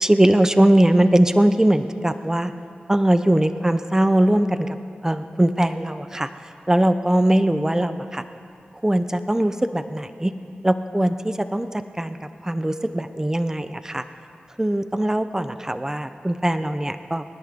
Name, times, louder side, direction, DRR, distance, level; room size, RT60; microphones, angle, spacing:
voice 1, 0.0-2.5 2.9-4.7 5.0-6.3 6.7-8.2 8.8-10.3 10.6-11.7 12.0-12.2 12.4-14.0 14.6-17.2, right 1 dB, 15° right, 10 dB, 0.7 m, -20 dB
26.5 x 10.5 x 3.6 m, 2.4 s
cardioid pair, 50°, 4 cm